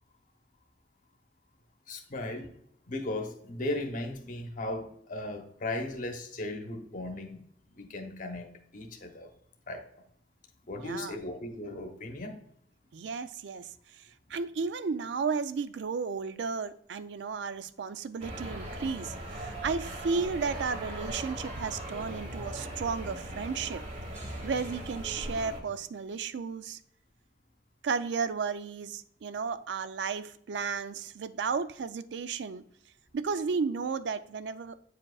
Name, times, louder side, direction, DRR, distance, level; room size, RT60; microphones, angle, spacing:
voice 1, 1.9-2.5 2.9-7.4 7.8-9.3 9.7-9.8 10.7-12.4, left 2 dB, 50° left, 0.9 m, -37 dB
voice 2, 10.8-11.1 12.9-13.7 14.3-23.8 24.4-26.8 27.8-32.6 33.1-34.7, right 5 dB, 80° right, 0.4 m, -33 dB
sound 1, 18.2-25.6, right 1 dB, 45° right, 1.3 m, -39 dB
8.5 x 5.0 x 2.3 m
head